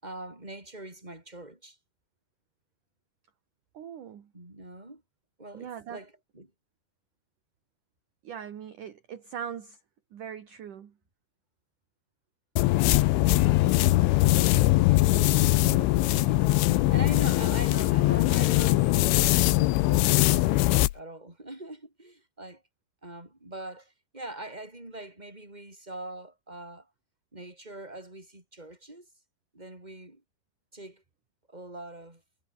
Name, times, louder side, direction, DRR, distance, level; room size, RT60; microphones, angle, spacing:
voice 1, 0.0-1.8 4.3-5.0 5.4-6.5 13.3-13.8 14.3-22.6 23.0-26.9 27.3-29.1 29.5-30.2 30.7-31.0 31.5-32.2, right 2 dB, 10° right, 6.5 m, -43 dB
voice 2, 3.7-4.3 5.5-6.0 8.2-9.8 10.1-10.9, right 8 dB, 50° right, 3.1 m, -40 dB
sound 1, 12.6-20.9, left 18 dB, 85° left, 3.4 m, -22 dB
omnidirectional pair, 5.4 m